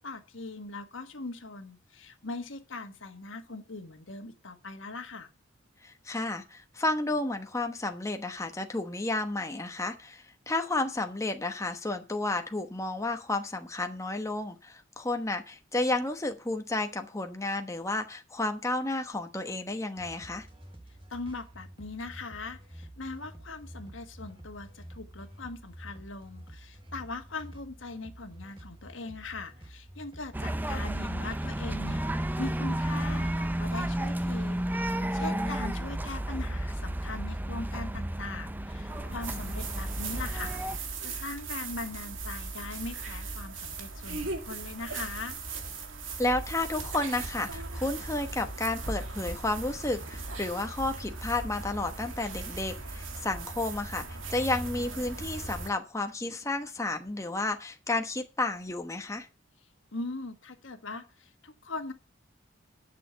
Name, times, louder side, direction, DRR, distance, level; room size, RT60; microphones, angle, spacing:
voice 1, 0.0-5.3 21.1-45.4 59.9-61.9, left 3 dB, 75° left, 7 dB, 1.6 m, -40 dB
voice 2, 5.8-20.5 35.2-35.5 46.2-59.3, left 2 dB, 15° left, 5 dB, 1.1 m, -32 dB
sound 1, 19.9-35.0, right 1 dB, 30° right, 3.4 m, -49 dB
sound 2, 30.3-40.8, right 1 dB, 10° right, 0.6 m, -32 dB
sound 3, 38.9-55.7, right 3 dB, 90° right, 2.2 m, -38 dB
11.0 x 6.7 x 6.9 m, 0.31 s
head